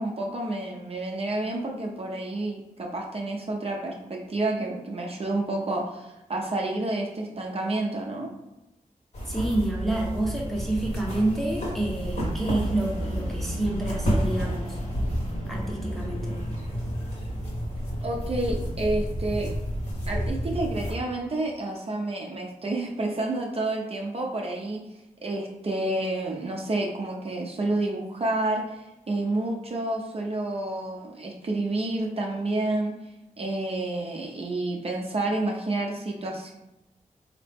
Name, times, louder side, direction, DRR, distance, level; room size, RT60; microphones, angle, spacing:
voice 1, 0.0-8.3 18.0-19.5 20.1-24.8 25.2-33.0 33.4-36.5, right 2 dB, 45° right, -1 dB, 0.6 m, -29 dB
sound 1, 9.1-20.9, equal, 50° left, 1.3 m, -30 dB
voice 2, 9.3-14.8 15.5-16.3, right 2 dB, ahead, -3 dB, 0.7 m, -28 dB
4.0 x 2.9 x 3.4 m, 0.93 s
wide cardioid pair, 130°, 14 cm